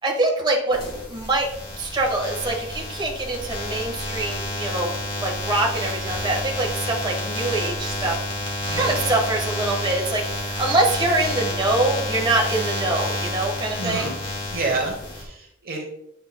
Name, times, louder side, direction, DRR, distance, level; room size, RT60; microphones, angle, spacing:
voice 1, 0.0-0.8 1.1-1.5 1.8-14.1, right 2 dB, 25° right, -2 dB, 1.3 m, -24 dB
sound 1, 0.7-15.2, left 1 dB, 25° left, 1.8 m, -29 dB
voice 2, 13.8-14.2 14.5-15.9, right 3 dB, 45° right, 1 dB, 1.0 m, -29 dB
8.7 x 5.6 x 2.2 m, 0.81 s
head